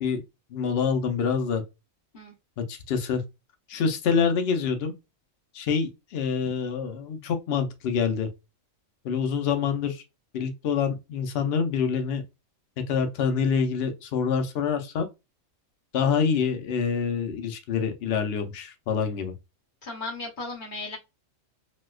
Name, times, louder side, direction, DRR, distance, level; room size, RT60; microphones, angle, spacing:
voice 1, 0.5-1.6 2.6-3.2 3.7-4.9 5.5-8.3 9.0-10.0 10.3-12.2 12.9-15.1 15.9-19.3, left 6 dB, 60° left, 0.8 m, -26 dB
voice 2, 19.8-21.0, left 3 dB, 40° left, 1.1 m, -35 dB
4.1 x 2.2 x 2.3 m
omnidirectional pair, 1.4 m